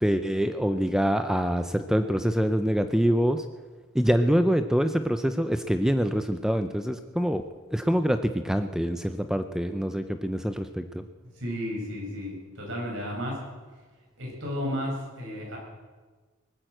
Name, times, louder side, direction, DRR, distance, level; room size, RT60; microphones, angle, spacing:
voice 1, 0.0-3.4 3.9-7.4 7.7-11.0, equal, 5° right, 8 dB, 0.5 m, -25 dB
voice 2, 11.4-13.4 14.2-15.6, equal, 65° right, -1 dB, 5.9 m, -33 dB
19.5 x 9.3 x 7.8 m, 1.4 s
head